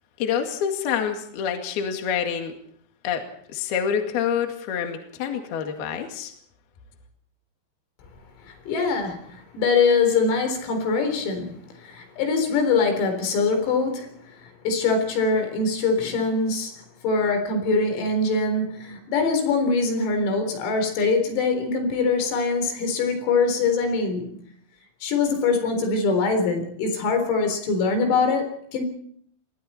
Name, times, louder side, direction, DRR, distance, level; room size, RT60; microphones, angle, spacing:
voice 1, 0.2-2.5 3.0-3.2 3.5-6.3, left 8 dB, 55° left, 4 dB, 3.6 m, -27 dB
voice 2, 8.5-11.5 11.8-14.1 14.6-16.7 17.0-24.4 25.0-28.8, left 4 dB, 80° left, 6 dB, 6.6 m, -23 dB
28.0 x 22.0 x 4.3 m, 0.62 s
omnidirectional pair, 6.0 m